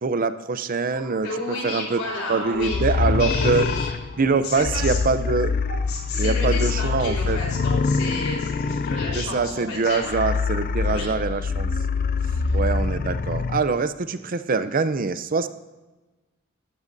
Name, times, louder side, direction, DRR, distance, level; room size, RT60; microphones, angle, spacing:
voice 1, 0.0-1.3 1.6-2.0 2.3-3.6 4.2-5.5 6.2-7.4 9.2-11.7 12.5-15.5, right 4 dB, 40° right, 12 dB, 0.5 m, -24 dB
sound 1, 0.9-4.7 5.6-6.0 6.9-7.2, right 4 dB, 55° right, 1.7 m, -42 dB
voice 2, 1.2-3.9 4.4-5.0 5.9-10.1 10.8-11.2 12.4-12.6, left 3 dB, 75° left, -2 dB, 4.1 m, -31 dB
sound 2, 2.6-13.6, left 4 dB, 45° left, 0.4 m, -25 dB
15.5 x 12.5 x 2.7 m, 1.2 s
head